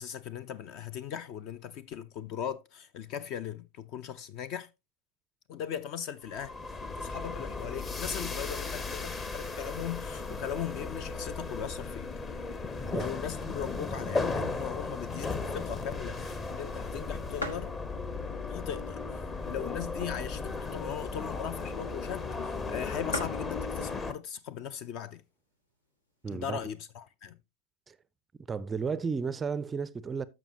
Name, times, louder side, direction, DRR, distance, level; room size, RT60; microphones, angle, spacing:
voice 1, 0.0-4.7 5.5-6.6 7.0-12.1 12.9-17.7 18.5-25.2 26.3-27.4, left 9 dB, 40° left, 0.5 m, -39 dB
sound 1, 6.3-24.1, left 3 dB, 20° left, 0.8 m, -36 dB
sound 2, 17.4-17.8 18.4-18.5 19.3-20.5 20.8-20.9 21.1-21.4 22.1-22.2 22.5-22.6 22.8-22.9 23.1-23.5 24.4-24.7 25.3-25.4 25.5-26.3, left 2 dB, 80° left, 1.5 m, -39 dB
voice 2, 26.2-26.6 27.9-28.0 28.5-30.3, right 5 dB, 15° right, 0.4 m, -33 dB
14.0 x 5.4 x 2.8 m
figure-of-eight pair, 90°, 0 cm